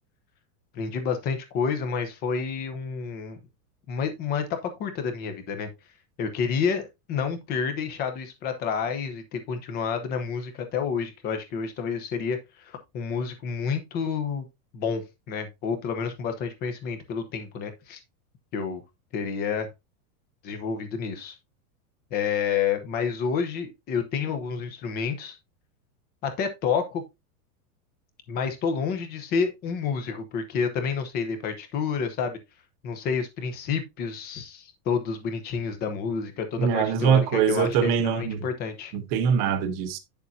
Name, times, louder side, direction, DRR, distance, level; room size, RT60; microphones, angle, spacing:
voice 1, 0.7-3.4 3.9-5.7 6.2-14.4 14.7-18.0 18.5-18.8 19.1-19.7 20.4-21.4 22.1-25.4 26.2-27.0 28.3-32.4 32.8-38.9, left 6 dB, 20° left, 0.9 m, -29 dB
voice 2, 36.6-38.4 38.9-40.0, right 7 dB, 30° right, 1.0 m, -23 dB
9.0 x 6.9 x 2.7 m
supercardioid pair, 175°, 46 cm